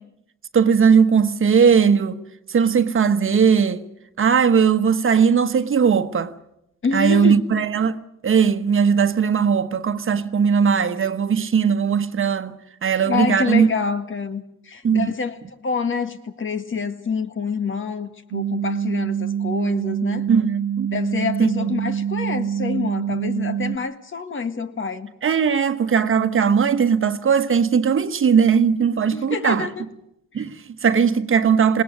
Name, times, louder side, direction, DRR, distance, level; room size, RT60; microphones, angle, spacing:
voice 1, 0.5-2.2 2.5-3.8 4.2-6.3 6.9-13.7 14.8-15.1 20.3-20.5 20.8-20.9 21.4-21.5 25.2-29.7 30.3-31.8, right 6 dB, 45° right, 1.3 m, -18 dB
voice 2, 6.8-7.4 13.1-20.3 20.9-25.1 29.1-29.9 30.3-30.5, left 5 dB, 40° left, 1.9 m, -27 dB
sound 1, 18.3-23.8, right 8 dB, 65° right, 0.9 m, -25 dB
20.5 x 18.0 x 9.6 m
cardioid pair, 90°, 30 cm